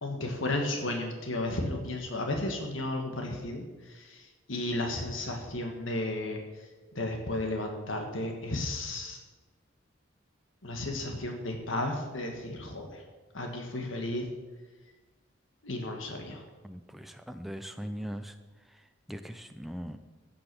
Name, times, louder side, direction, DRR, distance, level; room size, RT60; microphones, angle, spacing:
voice 1, 0.0-3.6 3.9-4.2 4.5-6.4 6.9-9.2 10.6-13.0 13.3-14.3 15.6-16.4, left 1 dB, 70° left, 3 dB, 1.6 m, -33 dB
voice 2, 16.6-18.4 18.7-20.0, equal, ahead, 7 dB, 0.6 m, -40 dB
15.5 x 6.0 x 6.9 m, 1.3 s
head